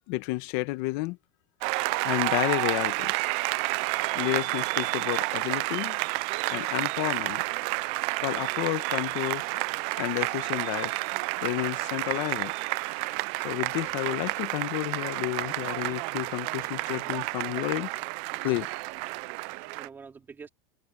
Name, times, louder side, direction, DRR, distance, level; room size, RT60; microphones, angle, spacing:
voice 1, 0.1-1.2 1.7-3.3 4.1-6.0 6.5-7.4 8.2-9.6 10.0-12.5 13.4-17.9 18.4-18.7, left 21 dB, 55° left, 1.3 m, -31 dB
Applause, 1.6-19.9, right 25 dB, 50° right, 0.5 m, -30 dB
voice 2, 18.4-18.7 19.3-20.5, right 5 dB, 15° right, 3.5 m, -48 dB
supercardioid pair, 150°, 13 cm